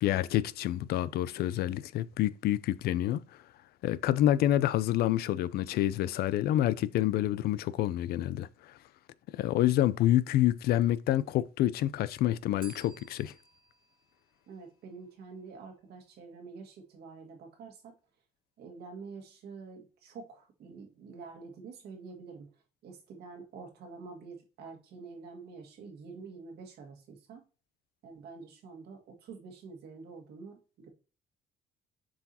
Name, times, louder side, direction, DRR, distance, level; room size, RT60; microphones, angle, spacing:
voice 1, 0.0-3.2 3.8-8.5 9.3-13.3, left 13 dB, 70° left, 0.4 m, -27 dB
Bell, 12.6-15.4, right 6 dB, 25° right, 1.5 m, -56 dB
voice 2, 14.5-17.9 18.6-22.5 22.8-27.4 28.0-30.9, right 4 dB, 70° right, 1.8 m, -47 dB
7.2 x 4.7 x 2.8 m
cardioid pair, 110°, 17 cm